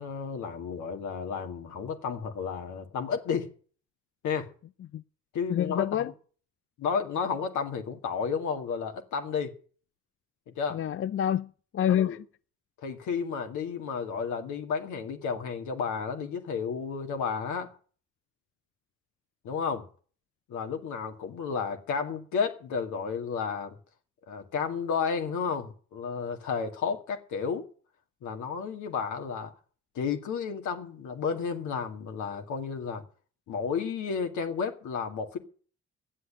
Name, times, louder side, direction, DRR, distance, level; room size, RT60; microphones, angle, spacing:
voice 1, 0.0-3.5 4.2-4.5 5.3-6.1 6.8-9.5 10.5-10.8 11.9-12.2 12.8-17.7 19.4-19.8 20.5-23.8 24.3-27.7 28.2-29.5 30.0-33.0 33.5-35.4, left 6 dB, 80° left, 2.1 m, -32 dB
voice 2, 5.5-6.1 10.7-12.2, left 10 dB, 45° left, 0.5 m, -27 dB
11.0 x 8.4 x 8.8 m
supercardioid pair, 60°, 30 cm